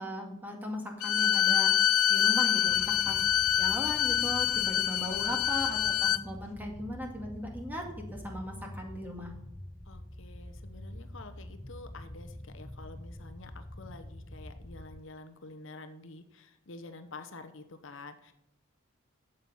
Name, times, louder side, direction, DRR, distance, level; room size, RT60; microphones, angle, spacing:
voice 1, 0.0-9.3, equal, 10° right, 1 dB, 2.1 m, -38 dB
Bowed string instrument, 1.0-6.2, left 11 dB, 80° left, 0.5 m, -26 dB
sound 1, 2.7-15.0, left 1 dB, 10° left, 0.3 m, -46 dB
voice 2, 9.8-18.3, left 3 dB, 55° left, 8 dB, 0.8 m, -48 dB
12.0 x 7.7 x 5.5 m, 0.88 s
head